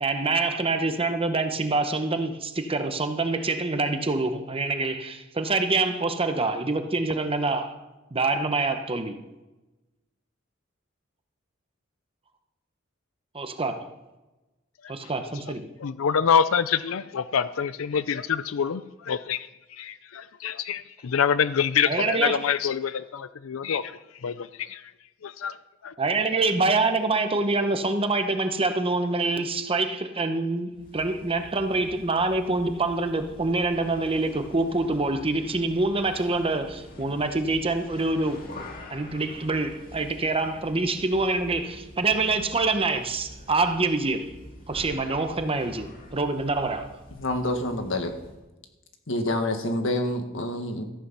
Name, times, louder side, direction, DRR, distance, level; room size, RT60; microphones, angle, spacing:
voice 1, 0.0-7.8 8.1-9.2 13.3-13.9 14.9-15.7 21.9-22.4 26.0-38.5 38.9-44.3 44.7-46.9, right 3 dB, 30° right, 1.0 m, -26 dB
voice 2, 15.8-24.9 25.2-25.6 25.8-25.9, left 7 dB, 85° left, 0.5 m, -26 dB
sound 1, 30.7-48.4, left 1 dB, 45° left, 2.1 m, -46 dB
voice 3, 47.2-48.1 49.1-50.9, left 1 dB, 70° left, 1.7 m, -27 dB
14.0 x 8.4 x 5.6 m
head